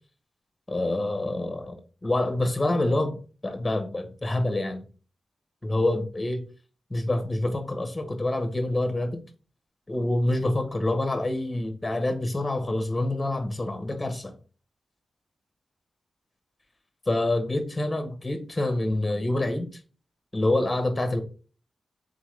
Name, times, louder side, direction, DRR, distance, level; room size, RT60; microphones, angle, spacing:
voice 1, 0.7-3.2 3.4-4.9 5.6-6.4 6.9-9.2 9.9-14.3 17.1-19.7 20.3-21.2, left 1 dB, 20° left, 1.0 m, -26 dB
3.9 x 3.5 x 3.2 m
cardioid pair, 65°, 0 cm